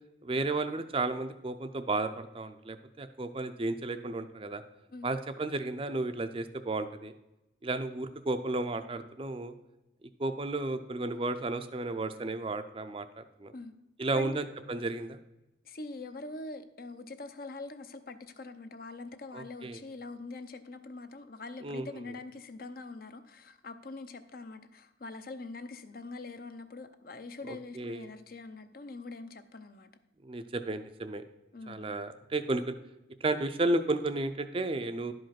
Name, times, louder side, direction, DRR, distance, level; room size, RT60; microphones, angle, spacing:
voice 1, 0.2-4.6 5.0-7.1 7.6-9.5 10.2-13.5 14.0-15.2 19.3-19.8 21.6-21.9 27.5-28.1 30.2-31.2 31.7-32.8 33.2-35.1, right 2 dB, 30° right, 9 dB, 0.5 m, -33 dB
voice 2, 14.1-14.4 15.6-29.9 31.5-32.0, left 3 dB, 50° left, 9 dB, 0.7 m, -44 dB
11.0 x 5.3 x 5.8 m, 0.93 s
head